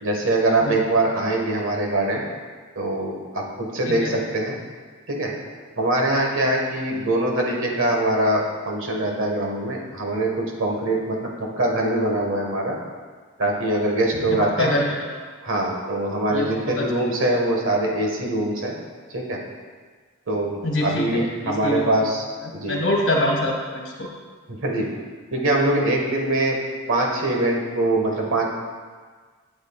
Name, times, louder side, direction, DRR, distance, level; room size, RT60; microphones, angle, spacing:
voice 1, 0.0-2.2 2.7-4.6 5.1-5.3 5.8-12.8 13.4-14.8 15.4-18.7 19.1-19.4 20.3-22.3 22.5-22.8 24.5-24.9 25.3-26.6 26.9-28.5, right 1 dB, 60° right, 0 dB, 1.6 m, -23 dB
voice 2, 14.3-15.2 16.3-16.9 20.6-21.9 22.7-24.1, left 1 dB, 60° left, -2 dB, 1.9 m, -25 dB
12.0 x 8.0 x 2.4 m, 1.5 s
head